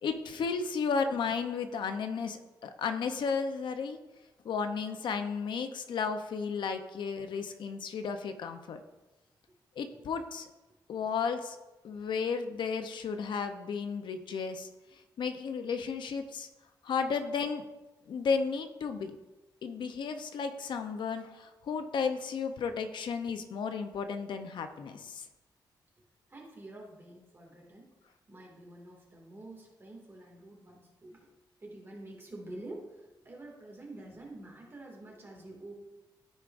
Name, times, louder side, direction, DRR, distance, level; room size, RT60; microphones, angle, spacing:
voice 1, 0.0-4.0 4.4-8.8 9.8-10.5 10.9-11.6 11.8-16.5 16.8-17.7 18.1-19.1 19.6-25.2, left 5 dB, 75° left, 7 dB, 0.7 m, -33 dB
voice 2, 26.3-27.9 28.3-31.3 31.6-35.7, right 2 dB, 30° right, -2 dB, 2.2 m, -48 dB
13.5 x 4.7 x 2.6 m, 1.1 s
cardioid pair, 105°, 8 cm